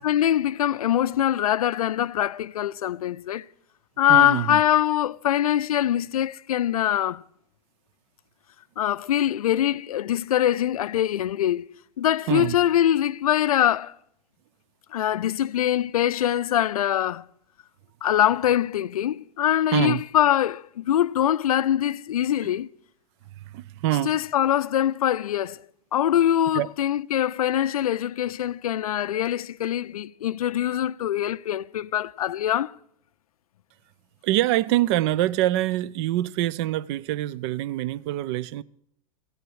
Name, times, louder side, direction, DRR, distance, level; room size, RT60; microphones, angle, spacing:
voice 1, 0.0-3.5 4.0-7.2 8.8-11.7 12.0-13.9 14.9-17.3 18.0-22.7 24.1-25.6 25.9-32.7, left 11 dB, 70° left, 0.5 m, -23 dB
voice 2, 4.1-4.6 12.3-12.6 19.7-20.0 23.5-24.1 26.5-26.7 34.2-38.6, right 14 dB, 45° right, 0.5 m, -25 dB
15.0 x 10.5 x 6.4 m
figure-of-eight pair, 95°, 19 cm